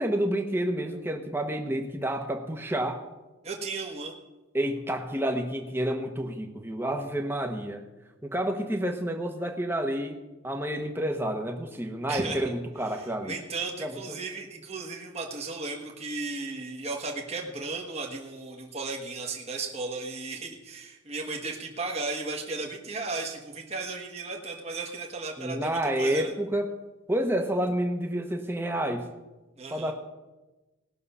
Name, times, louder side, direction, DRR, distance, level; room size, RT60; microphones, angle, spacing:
voice 1, 0.0-3.0 4.5-7.8 8.2-10.2 10.4-13.4 13.8-14.2 25.4-26.7 27.1-29.0 29.7-29.9, right 1 dB, 10° right, 4 dB, 1.1 m, -29 dB
voice 2, 3.4-4.1 12.1-12.4 12.9-26.3 29.6-29.9, right 3 dB, 30° right, 1 dB, 1.4 m, -35 dB
18.5 x 6.7 x 5.6 m, 1.1 s
head